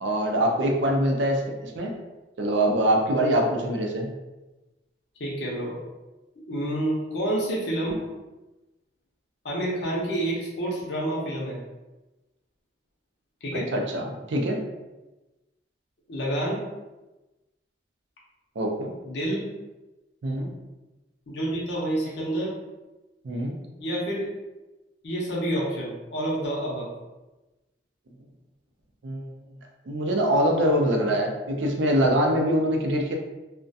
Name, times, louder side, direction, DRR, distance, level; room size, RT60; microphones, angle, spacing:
voice 1, 0.0-1.9 2.4-4.1 13.7-14.6 18.6-18.9 20.2-20.5 23.2-23.5 29.0-29.2 29.9-33.1, right 1 dB, 70° right, 1 dB, 0.4 m, -24 dB
voice 2, 5.2-5.8 6.5-8.0 9.4-11.6 13.4-13.7 16.1-16.6 19.0-19.5 21.3-22.5 23.8-24.3 25.0-26.9, right 1 dB, 60° left, -5 dB, 0.5 m, -28 dB
2.3 x 2.1 x 2.6 m, 1.1 s
head